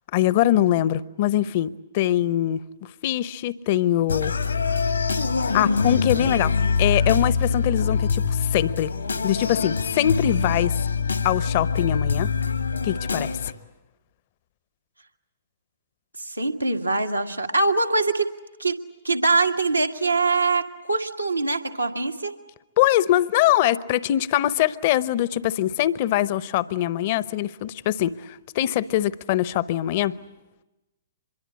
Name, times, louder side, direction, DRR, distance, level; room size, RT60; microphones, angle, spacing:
voice 1, 0.1-2.6 3.0-4.3 5.5-6.5 6.8-8.9 9.2-10.8 11.2-12.3 12.8-13.3 22.8-30.2, left 13 dB, 40° left, 18 dB, 0.8 m, -23 dB
sound 1, 4.1-13.5, left 5 dB, 75° left, 1.7 m, -24 dB
voice 2, 16.2-18.3 18.6-18.8 19.0-20.6 20.9-22.3, right 3 dB, 85° right, 4 dB, 1.7 m, -23 dB
25.5 x 22.5 x 8.4 m, 1.0 s
figure-of-eight pair, 115°, 0 cm